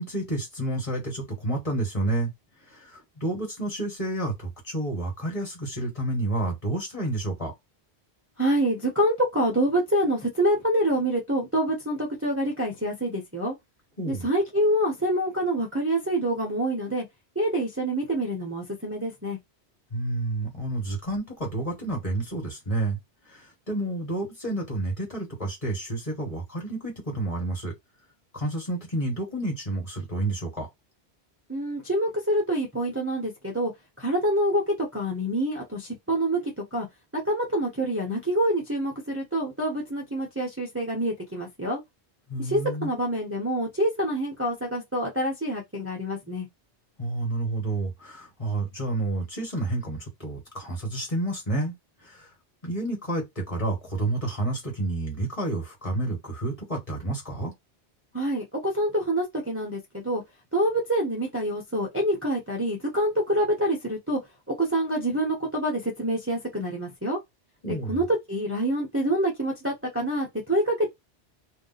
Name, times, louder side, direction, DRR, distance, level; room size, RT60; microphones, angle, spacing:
voice 1, 0.0-2.3 2.9-7.5 14.0-14.3 19.9-23.0 23.7-27.7 28.3-30.7 42.3-42.9 47.0-51.7 52.6-57.5 67.6-68.0, right 2 dB, 30° left, 1.5 m, -30 dB
voice 2, 8.4-13.5 14.1-17.0 17.4-19.4 31.5-33.7 34.0-36.9 37.3-41.8 42.4-46.5 58.1-60.2 60.5-64.2 64.6-67.2 67.7-70.9, right 1 dB, 15° right, 0.7 m, -26 dB
2.7 x 2.1 x 4.0 m
omnidirectional pair, 1.1 m